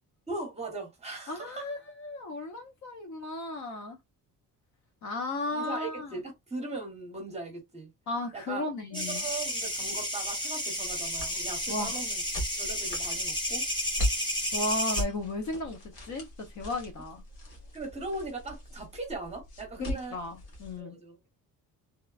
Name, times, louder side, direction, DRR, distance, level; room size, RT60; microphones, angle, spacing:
voice 1, 0.3-1.7 5.5-7.9 8.3-8.6 8.9-12.2 12.5-13.6 17.7-20.2 20.8-21.2, right 3 dB, 20° right, 1.0 m, -39 dB
voice 2, 1.3-4.0 5.0-6.2 8.1-9.2 11.7-12.0 14.5-15.8 16.1-16.3 16.5-17.2 19.8-21.0, left 2 dB, 55° left, 0.8 m, -35 dB
sound 1, 8.9-15.0, equal, 15° left, 0.8 m, -32 dB
sound 2, 10.8-20.8, equal, 90° left, 1.4 m, -39 dB
3.0 x 2.1 x 2.4 m
cardioid pair, 170°, 35 cm